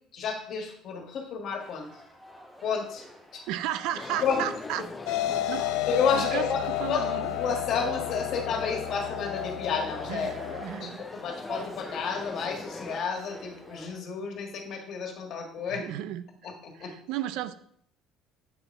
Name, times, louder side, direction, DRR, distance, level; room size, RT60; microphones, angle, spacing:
voice 1, 0.1-1.9 2.6-3.1 3.3-3.4 4.2-4.5 5.3-5.4 5.9-6.6 6.9-10.3 10.8-15.8 16.4-16.9, left 6 dB, 55° left, 3 dB, 1.6 m, -31 dB
sound 1, 1.6-14.0, left 1 dB, 5° right, 1.3 m, -47 dB
voice 2, 3.5-4.9 5.5-5.6 6.1-7.3 10.1-11.1 15.6-17.5, right 12 dB, 80° right, 13 dB, 0.5 m, -34 dB
sound 2, 3.9-13.0, left 3 dB, 15° left, 0.6 m, -41 dB
sound 3, 5.1-10.6, left 13 dB, 80° left, 0.5 m, -31 dB
8.1 x 4.0 x 4.3 m, 0.66 s
supercardioid pair, 95°, 0 cm